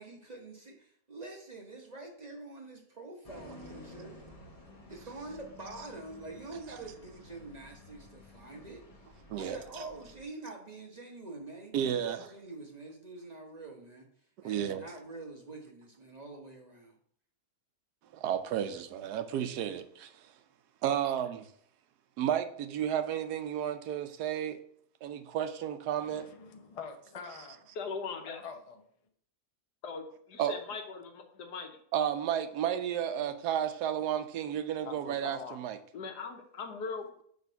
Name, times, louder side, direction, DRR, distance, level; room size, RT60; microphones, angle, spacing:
voice 1, 0.0-4.1 4.9-8.8 9.4-14.1 14.4-16.9, right 2 dB, 35° right, 0.8 m, -46 dB
sound 1, 3.2-10.2, left 1 dB, 25° left, 1.0 m, -52 dB
voice 2, 11.7-12.3 14.4-14.8 18.1-20.3 20.8-21.5 22.2-24.6 25.0-26.3 30.4-30.5 31.9-35.8, right 9 dB, 80° right, 1.1 m, -32 dB
voice 3, 26.0-27.8 28.4-28.9 34.8-35.6, left 6 dB, 50° left, 0.4 m, -45 dB
voice 4, 27.8-28.4 29.8-31.7 35.9-37.1, left 4 dB, 90° left, 1.5 m, -40 dB
6.3 x 3.5 x 5.5 m
omnidirectional pair, 1.7 m